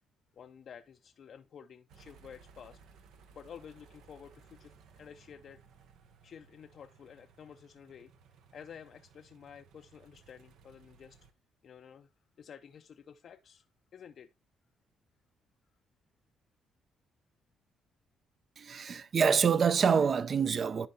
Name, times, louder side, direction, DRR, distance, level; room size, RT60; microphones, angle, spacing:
voice 1, 0.3-2.8 3.3-5.6 6.2-8.1 8.5-11.2 11.6-12.1 12.4-13.7 13.9-14.3, left 7 dB, 60° left, 0.4 m, -51 dB
sound 1, 1.9-11.3, right 5 dB, 80° right, 0.7 m, -60 dB
voice 2, 18.6-20.9, right 6 dB, 50° right, 0.5 m, -26 dB
11.0 x 4.3 x 2.7 m
cardioid pair, 90°, 0 cm